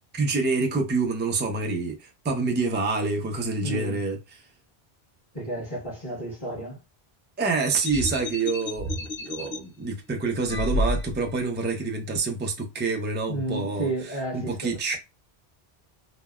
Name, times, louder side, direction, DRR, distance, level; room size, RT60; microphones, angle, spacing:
voice 1, 0.1-4.2 7.4-13.9 14.3-15.0, right 3 dB, 20° right, 0.3 m, -27 dB
voice 2, 3.6-4.0 5.3-6.8 13.3-15.0, right 1 dB, 25° left, 1.3 m, -32 dB
sound 1, 7.8-9.6 10.5-11.4, left 1 dB, 65° left, 1.2 m, -29 dB
3.2 x 2.1 x 2.3 m
omnidirectional pair, 1.1 m